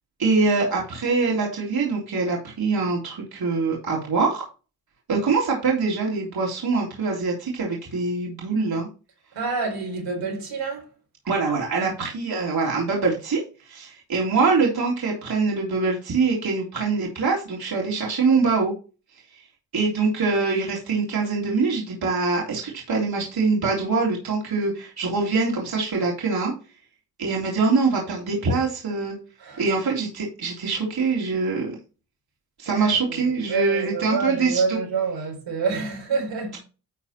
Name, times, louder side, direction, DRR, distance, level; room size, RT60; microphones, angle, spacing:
voice 1, 0.2-4.4 5.1-8.9 11.2-13.4 13.7-18.7 19.7-26.5 27.2-29.2 29.6-31.7 32.6-34.8, right 4 dB, 60° right, 3.5 m, -24 dB
voice 2, 9.3-10.8 11.7-11.9 29.4-29.6 32.7-33.2 33.5-36.6, right 5 dB, 85° right, 4.7 m, -27 dB
11.5 x 4.1 x 4.3 m
cardioid pair, 60°, 42 cm